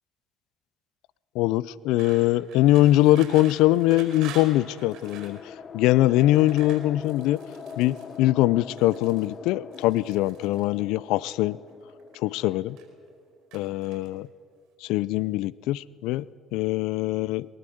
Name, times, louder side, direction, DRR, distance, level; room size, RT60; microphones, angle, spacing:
voice 1, 1.3-7.4 7.8-11.6 12.1-12.8 13.5-14.3 14.8-16.3 16.5-17.5, left 16 dB, 75° left, 21 dB, 0.5 m, -22 dB
sound 1, 2.0-5.4 6.1-8.2 8.7-9.3 9.7-10.6 11.5-12.2 12.5-13.1 13.5-14.3, right 8 dB, 75° right, 4.9 m, -46 dB
sound 2, 3.1-13.2, left 6 dB, 45° left, 1.2 m, -44 dB
23.0 x 19.0 x 7.9 m, 2.2 s
supercardioid pair, 75°, 0 cm